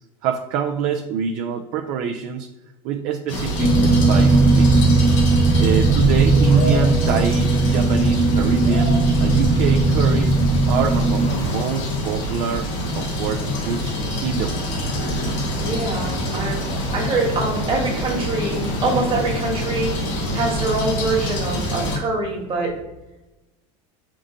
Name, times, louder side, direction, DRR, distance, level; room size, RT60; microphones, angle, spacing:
voice 1, 0.2-2.5 2.8-5.0 5.6-10.4 10.7-13.9 14.2-14.7 16.5-16.8, right 7 dB, 55° right, 3 dB, 0.4 m, -26 dB
sound 1, 3.3-22.0, left 1 dB, 90° left, 1.0 m, -26 dB
sound 2, 3.6-11.3, right 3 dB, ahead, 0.6 m, -17 dB
voice 2, 15.6-19.9 20.3-22.7, right 3 dB, 35° right, -1 dB, 1.3 m, -24 dB
3.6 x 2.6 x 3.7 m, 1.0 s
supercardioid pair, 125°, 16 cm